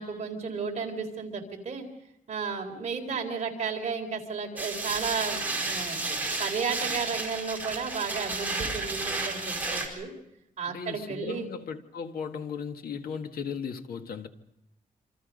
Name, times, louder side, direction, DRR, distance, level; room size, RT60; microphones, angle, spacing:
voice 1, 0.0-1.9 2.3-10.1 10.6-11.5, right 5 dB, 50° right, 4.0 m, -33 dB
sound 1, 4.6-9.9, right 3 dB, 10° right, 4.5 m, -32 dB
voice 2, 10.7-14.3, left 6 dB, 85° left, 1.8 m, -36 dB
27.5 x 27.0 x 5.3 m
wide cardioid pair, 175°, 15 cm